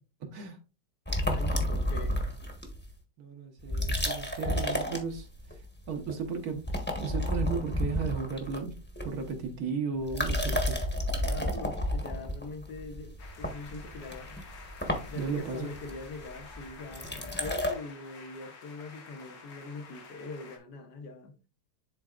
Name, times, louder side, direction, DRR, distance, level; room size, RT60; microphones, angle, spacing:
sound 1, 1.1-2.9 3.6-5.6 5.9-6.2 6.5-9.5 10.0-17.7, equal, 10° left, 0.9 m, -31 dB
voice 1, 1.3-2.2 11.2-14.4 15.0-21.3, left 3 dB, 70° left, 1.6 m, -42 dB
voice 2, 3.2-5.3 5.9-6.7 7.0-8.7 9.0-10.8 15.1-15.7, right 5 dB, 60° right, 1.5 m, -34 dB
sound 2, 13.2-20.6, left 4 dB, 90° left, 2.0 m, -50 dB
11.0 x 4.0 x 2.5 m
omnidirectional pair, 1.9 m